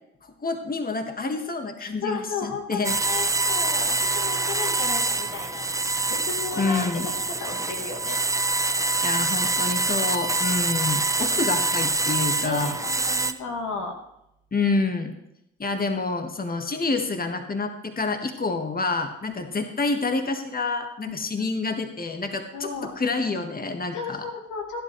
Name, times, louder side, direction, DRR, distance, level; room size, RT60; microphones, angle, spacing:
voice 1, 0.4-3.0 6.6-7.1 9.0-12.7 14.5-15.1 15.6-24.3, left 3 dB, 30° left, 6 dB, 1.6 m, -28 dB
voice 2, 1.8-5.7 6.1-8.2 12.4-13.9 21.0-21.5 22.5-22.9 23.9-24.8, left 4 dB, 75° left, 1 dB, 2.3 m, -34 dB
sound 1, 2.8-13.3, right 3 dB, 10° right, 0.7 m, -25 dB
15.0 x 11.0 x 3.2 m, 0.82 s
hypercardioid pair, 50°, 31 cm